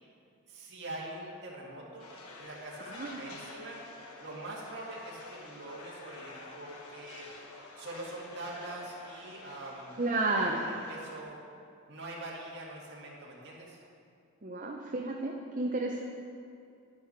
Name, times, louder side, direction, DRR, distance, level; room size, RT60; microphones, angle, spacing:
voice 1, 0.5-2.1 2.4-3.8 4.2-7.3 7.8-9.9 10.4-11.4 11.9-13.8, right 1 dB, 50° right, -4 dB, 2.2 m, -43 dB
sound 1, 2.0-11.2, left 2 dB, 85° left, 1.3 m, -49 dB
voice 2, 2.8-3.2 10.0-10.6 14.4-16.0, right 2 dB, 35° right, 0 dB, 0.6 m, -32 dB
10.5 x 9.6 x 4.5 m, 2.5 s
head